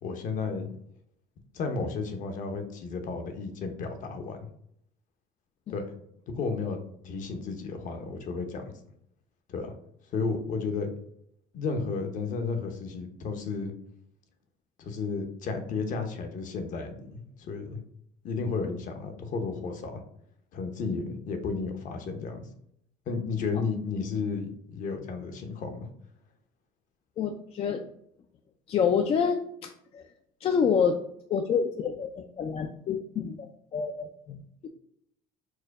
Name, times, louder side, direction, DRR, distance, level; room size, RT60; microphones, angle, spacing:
voice 1, 0.0-0.8 1.5-4.4 5.7-5.8 6.3-6.8 7.0-8.6 9.5-9.7 10.1-10.9 11.5-13.7 14.8-17.8 18.2-20.0 20.5-22.4 23.1-25.9, left 4 dB, 55° left, 6 dB, 0.9 m, -33 dB
voice 2, 27.2-27.8 28.7-30.0 30.4-31.0 31.3-34.7, left 6 dB, 40° left, 4 dB, 0.4 m, -28 dB
4.6 x 2.2 x 4.6 m, 0.72 s
cardioid pair, 110°, 16 cm